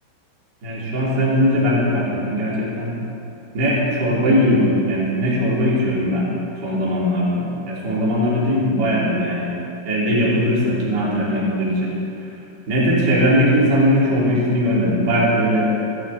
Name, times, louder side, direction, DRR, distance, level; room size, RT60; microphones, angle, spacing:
voice 1, 0.6-3.0 3.5-6.3 6.6-9.5 9.8-11.9 12.7-15.7, equal, 30° right, -7 dB, 2.0 m, -19 dB
15.0 x 11.5 x 3.9 m, 2.9 s
omnidirectional pair, 5.9 m